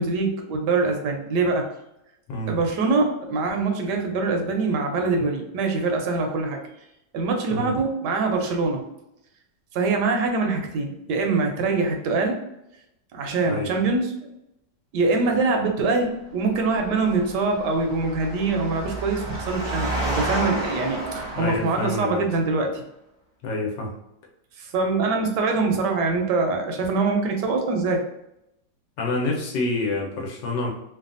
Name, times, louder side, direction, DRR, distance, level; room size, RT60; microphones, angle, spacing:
voice 1, 0.0-1.7 2.5-6.6 7.1-8.8 9.7-12.3 13.1-14.1 14.9-22.8 24.6-28.0, right 3 dB, 75° right, 3 dB, 1.2 m, -24 dB
Engine, 16.5-22.1, right 1 dB, 20° right, 0.7 m, -31 dB
voice 2, 21.3-22.2 23.4-23.9 29.0-30.7, left 2 dB, 85° left, -1 dB, 1.4 m, -27 dB
3.2 x 2.2 x 2.5 m, 0.84 s
omnidirectional pair, 1.9 m